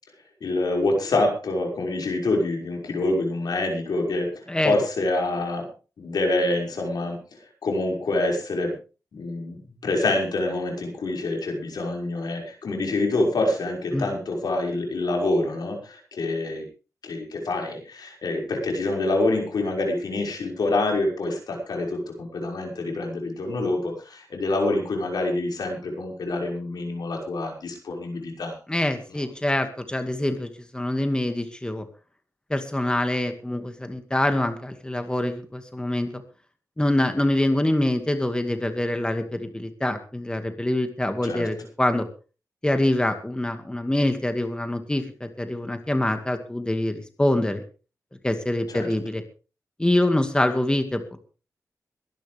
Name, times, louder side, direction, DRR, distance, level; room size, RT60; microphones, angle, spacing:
voice 1, 0.4-4.3 4.6-5.7 6.0-7.2 7.6-8.7 9.1-16.6 17.0-28.6 41.2-41.5 48.7-48.9, left 2 dB, 85° left, 1 dB, 5.8 m, -26 dB
voice 2, 28.7-31.9 32.5-36.1 36.8-42.1 42.6-47.6 48.2-49.2 49.8-51.0, left 1 dB, 15° left, 7 dB, 2.1 m, -25 dB
22.5 x 11.5 x 3.5 m, 0.35 s
wide cardioid pair, 80°, 7 cm